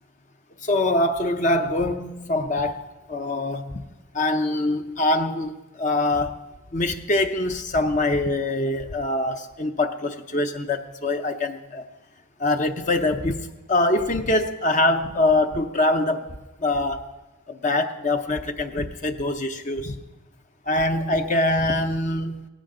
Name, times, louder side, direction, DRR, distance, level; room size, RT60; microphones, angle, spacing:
voice 1, 0.6-3.8 4.1-6.4 6.7-11.9 12.4-16.3 16.6-17.1 17.5-20.0 20.7-22.5, left 2 dB, 35° left, 6 dB, 0.7 m, -24 dB
18.0 x 15.0 x 3.8 m, 1.1 s
head